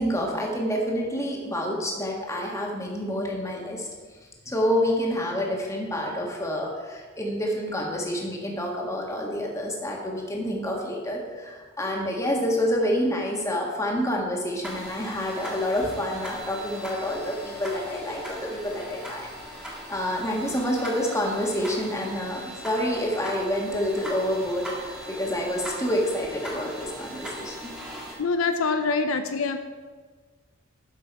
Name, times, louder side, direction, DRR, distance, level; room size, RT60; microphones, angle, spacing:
voice 1, 0.0-3.9 4.4-19.3 19.6-27.7, equal, 15° left, -1 dB, 1.6 m, -28 dB
sound 1, 14.6-28.1, equal, 5° right, 1.8 m, -39 dB
voice 2, 28.2-29.6, left 4 dB, 75° left, 8 dB, 0.5 m, -25 dB
12.0 x 5.9 x 4.7 m, 1.5 s
head